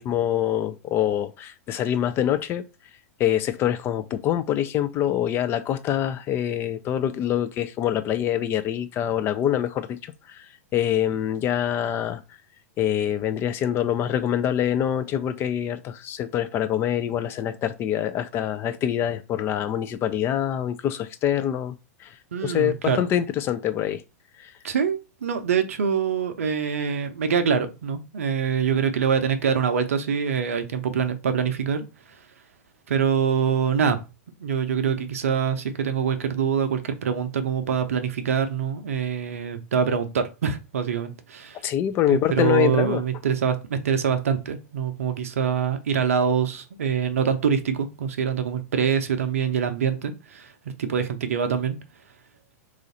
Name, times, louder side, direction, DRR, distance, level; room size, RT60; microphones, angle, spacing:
voice 1, 0.0-2.6 3.2-10.5 10.7-12.2 12.8-21.8 22.0-22.1 22.4-24.0 24.4-24.5 41.6-43.0, left 10 dB, 30° left, 0.4 m, -25 dB
voice 2, 22.3-23.1 24.6-31.8 32.9-34.0 34.4-41.6 42.0-50.5 50.8-51.8, right 7 dB, 65° right, 0.6 m, -24 dB
3.1 x 2.4 x 3.9 m
figure-of-eight pair, 100°, 8 cm